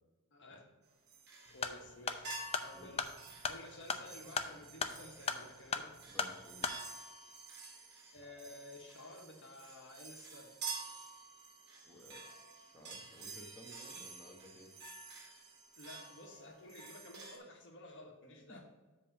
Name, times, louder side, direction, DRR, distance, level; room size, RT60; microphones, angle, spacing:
voice 1, 0.3-0.6 1.5-2.3 2.6-5.9 8.1-10.5 15.8-18.6, left 1 dB, 55° left, 2 dB, 1.4 m, -53 dB
sound 1, 1.1-1.9 2.2-17.4, right 4 dB, 50° right, 1.9 m, -50 dB
sound 2, 1.5-6.8, left 5 dB, 25° left, 0.5 m, -39 dB
voice 2, 6.1-6.7 11.8-12.3 12.6-14.7 18.3-18.6, left 1 dB, 5° left, -2 dB, 1.1 m, -56 dB
7.6 x 3.6 x 6.5 m, 1.3 s
head